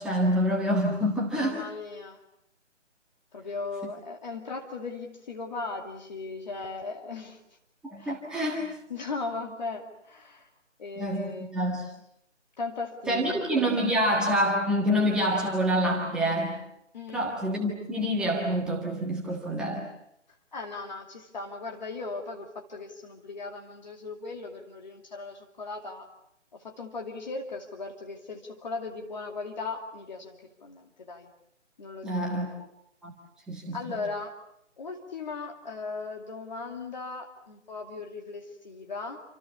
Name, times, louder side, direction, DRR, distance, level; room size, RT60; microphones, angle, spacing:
voice 1, 0.0-1.6 7.8-8.6 11.0-11.9 13.1-16.6 17.1-19.9 32.0-32.5 33.0-33.1 33.5-33.8, equal, ahead, -4 dB, 1.6 m, -27 dB
voice 2, 1.4-2.2 3.3-7.4 8.0-8.1 8.9-10.5 10.8-11.5 12.6-13.5 16.9-17.3 20.5-26.1 26.5-31.3 31.8-32.4 33.7-34.3 34.8-39.2, left 3 dB, 35° left, 2 dB, 2.6 m, -38 dB
28.5 x 27.0 x 7.0 m, 0.80 s
figure-of-eight pair, 150°, 36 cm